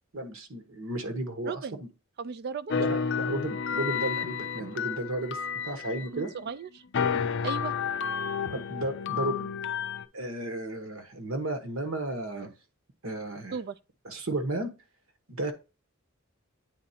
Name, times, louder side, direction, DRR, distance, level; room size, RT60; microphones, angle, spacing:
voice 1, 0.1-1.6 2.7-5.4 5.6-6.3 8.5-9.5 10.1-12.5 13.0-13.6 14.0-14.7 15.3-15.5, right 1 dB, 70° right, 1.2 m, -33 dB
voice 2, 1.5-1.8 2.2-2.8 6.0-6.8 7.4-7.7 13.5-13.8, right 5 dB, 50° right, 0.3 m, -36 dB
sound 1, 2.7-6.5 6.9-10.1, left 6 dB, 55° left, 0.5 m, -31 dB
9.4 x 4.1 x 2.7 m
head